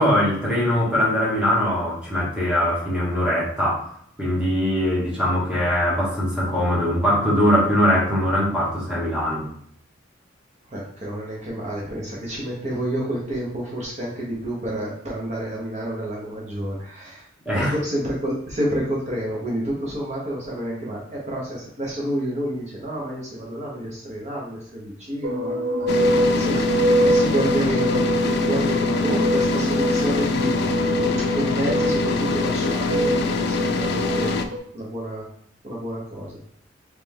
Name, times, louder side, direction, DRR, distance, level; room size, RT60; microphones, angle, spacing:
voice 1, 0.0-3.9 4.2-9.5 17.4-17.7, equal, 5° right, -6 dB, 1.3 m, -21 dB
voice 2, 10.7-17.2 17.5-34.4 34.7-35.2 35.6-36.4, right 1 dB, 40° right, -4 dB, 0.9 m, -29 dB
sound 1, 25.2-34.6, right 1 dB, 65° right, 0.6 m, -24 dB
sound 2, 25.9-34.4, left 4 dB, 60° left, 0.4 m, -24 dB
3.3 x 3.3 x 3.6 m, 0.68 s
head